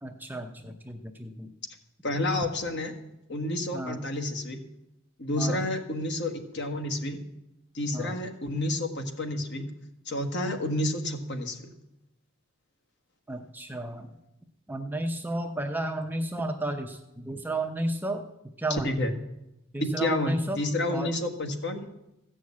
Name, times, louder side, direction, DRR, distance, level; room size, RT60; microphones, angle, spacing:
voice 1, 0.0-1.5 3.7-4.0 5.4-5.6 7.9-8.2 13.3-14.1 14.7-18.9 19.7-20.6 20.9-21.1, right 1 dB, 10° right, 4 dB, 0.7 m, -33 dB
voice 2, 2.0-2.9 3.3-4.6 5.2-7.2 7.7-9.7 10.1-11.7 18.8-19.1 19.8-21.9, left 1 dB, 50° left, 5 dB, 1.4 m, -30 dB
14.5 x 6.3 x 8.5 m, 0.89 s
head